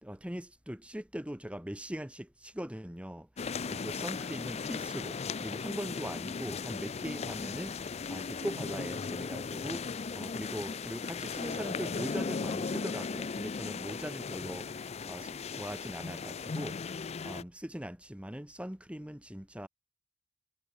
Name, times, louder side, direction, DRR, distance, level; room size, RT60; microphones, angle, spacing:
voice 1, 0.0-19.7, equal, 5° right, 1.5 m, -41 dB
sound 1, 3.4-17.4, left 5 dB, 30° left, 0.4 m, -37 dB
head